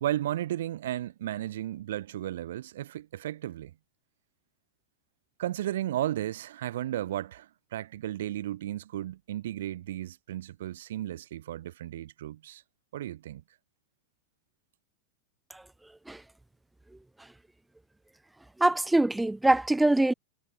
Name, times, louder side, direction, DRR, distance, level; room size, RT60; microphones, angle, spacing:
voice 1, 0.0-3.7 5.4-12.6 12.9-13.4, right 13 dB, 60° right, 1.1 m, -34 dB
voice 2, 18.6-20.1, right 2 dB, 5° right, 0.6 m, -23 dB
figure-of-eight pair, 90°, 0 cm